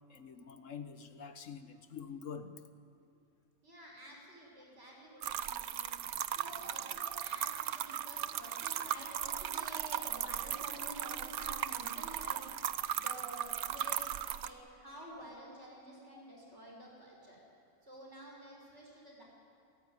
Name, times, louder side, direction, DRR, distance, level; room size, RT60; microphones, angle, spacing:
voice 1, 0.1-2.5 16.1-16.2, left 6 dB, 60° left, 9 dB, 1.5 m, -46 dB
voice 2, 3.6-5.9 6.3-12.5 12.9-17.4 17.8-19.2, equal, 50° right, -1 dB, 6.2 m, -50 dB
sound 1, 5.2-14.5, right 10 dB, 90° right, 1.2 m, -37 dB
28.0 x 14.5 x 9.8 m, 2.5 s
omnidirectional pair, 1.5 m